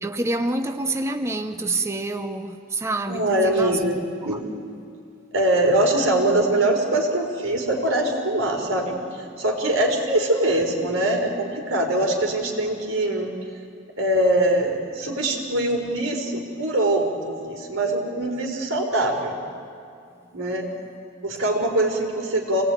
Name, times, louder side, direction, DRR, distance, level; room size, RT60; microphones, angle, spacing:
voice 1, 0.0-3.8, right 2 dB, 15° right, 7 dB, 0.7 m, -27 dB
voice 2, 3.1-4.5 5.3-13.3 14.0-19.4 20.3-20.7 21.2-22.6, right 1 dB, 90° right, 1 dB, 4.3 m, -23 dB
26.5 x 19.0 x 9.2 m, 2.4 s
head